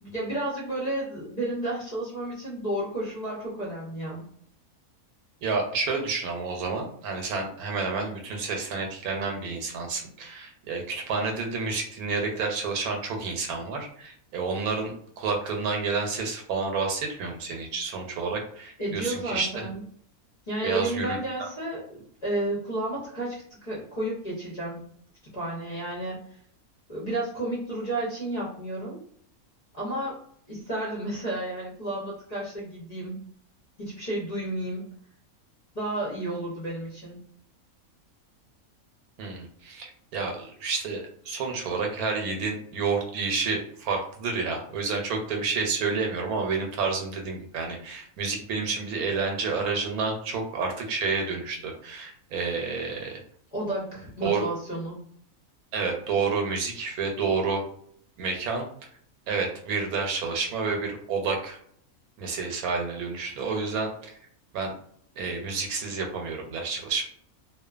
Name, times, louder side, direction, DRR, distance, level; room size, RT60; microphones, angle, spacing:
voice 1, 0.0-4.2 18.8-19.8 20.5-24.8 25.3-26.2 26.9-29.0 29.7-30.2 30.5-33.2 33.8-34.9 35.7-37.2 53.5-55.0, right 1 dB, 40° left, -6 dB, 0.6 m, -32 dB
voice 2, 5.4-19.7 20.6-21.5 39.2-53.2 54.2-54.5 55.7-57.6 58.2-58.7 59.3-61.6 62.2-64.1 64.5-64.7 65.2-67.1, right 4 dB, 85° right, 2 dB, 1.1 m, -29 dB
2.8 x 2.1 x 2.3 m, 0.63 s
omnidirectional pair, 1.5 m